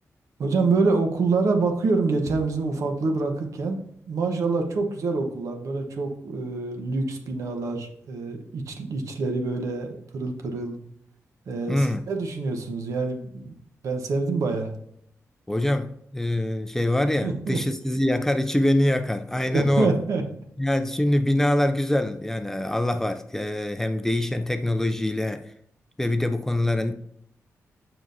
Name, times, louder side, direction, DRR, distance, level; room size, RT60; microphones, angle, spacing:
voice 1, 0.4-3.8 4.1-10.8 11.5-13.5 13.8-14.7 17.2-17.6 19.4-20.2, right 3 dB, 75° right, 1.1 m, -26 dB
voice 2, 11.7-12.0 15.5-19.9 20.6-25.5 26.0-26.9, left 1 dB, 10° left, 0.3 m, -24 dB
7.2 x 5.9 x 2.7 m
wide cardioid pair, 160°, 5 cm